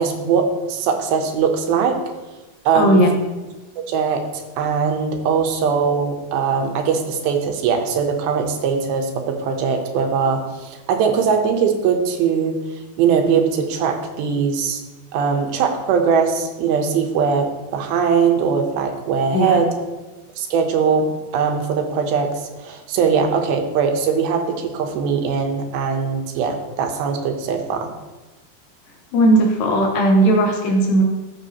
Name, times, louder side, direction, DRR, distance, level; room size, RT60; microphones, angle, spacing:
voice 1, 0.0-2.0 2.7-3.0 3.9-12.6 13.0-14.8 15.1-19.7 20.4-27.9, right 6 dB, 80° right, 4 dB, 2.6 m, -20 dB
voice 2, 2.7-3.2 19.3-19.6 29.1-31.0, right 1 dB, 70° left, 0 dB, 2.5 m, -16 dB
14.0 x 4.8 x 2.8 m, 1.1 s
omnidirectional pair, 4.5 m